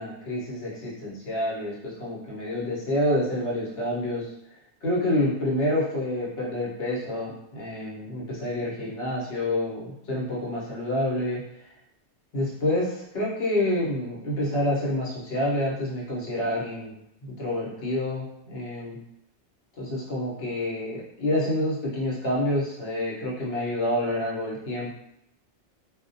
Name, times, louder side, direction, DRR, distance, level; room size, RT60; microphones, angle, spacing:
voice 1, 0.0-4.3 4.8-11.4 12.3-17.0 17.2-19.0 19.8-24.9, left 1 dB, 65° left, -5 dB, 1.0 m, -28 dB
2.3 x 2.1 x 2.6 m, 0.78 s
omnidirectional pair, 1.1 m